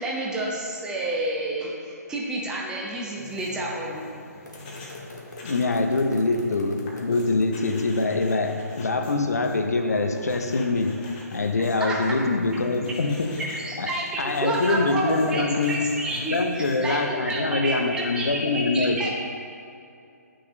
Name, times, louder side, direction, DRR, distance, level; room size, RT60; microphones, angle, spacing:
voice 1, 0.0-4.0 11.6-12.0 13.5-19.1, right 1 dB, 10° right, -3 dB, 0.8 m, -30 dB
sound 1, 3.2-17.0, left 3 dB, 30° left, 1.2 m, -45 dB
sound 2, 4.5-7.5, left 1 dB, 80° left, 1.4 m, -43 dB
voice 2, 5.4-15.9 16.3-19.1, left 3 dB, 65° left, 5 dB, 0.6 m, -24 dB
9.6 x 6.1 x 3.1 m, 2.6 s
figure-of-eight pair, 135°, 9 cm